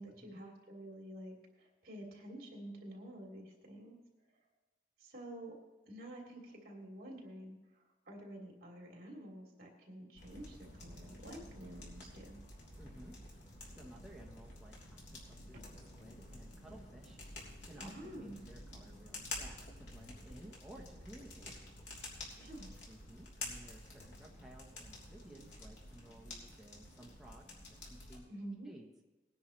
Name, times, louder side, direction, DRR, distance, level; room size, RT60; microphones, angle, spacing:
voice 1, 0.0-4.0 5.0-5.5 5.9-12.4 17.8-18.4 22.4-22.7 28.3-28.7, right 1 dB, 55° right, 0 dB, 2.8 m, -49 dB
sound 1, 10.1-28.2, left 2 dB, 75° left, 3.4 m, -50 dB
voice 2, 12.8-13.2 13.7-21.5 22.9-28.2 28.6-28.9, right 1 dB, 5° right, -2 dB, 1.1 m, -56 dB
20.0 x 10.0 x 3.2 m, 1.2 s
head